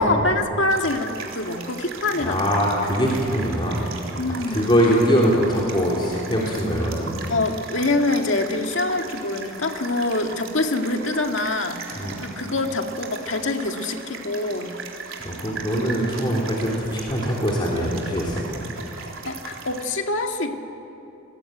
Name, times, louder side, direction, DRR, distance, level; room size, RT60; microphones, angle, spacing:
voice 1, 0.0-2.6 4.2-4.7 7.3-14.8 19.2-20.5, left 2 dB, 65° left, 4 dB, 2.1 m, -25 dB
sound 1, 0.7-19.8, right 4 dB, 90° right, 3.8 m, -38 dB
voice 2, 2.1-3.8 4.3-7.1 12.0-12.1 15.2-18.5, equal, 25° left, -4 dB, 3.7 m, -22 dB
29.0 x 21.0 x 9.3 m, 2.9 s
head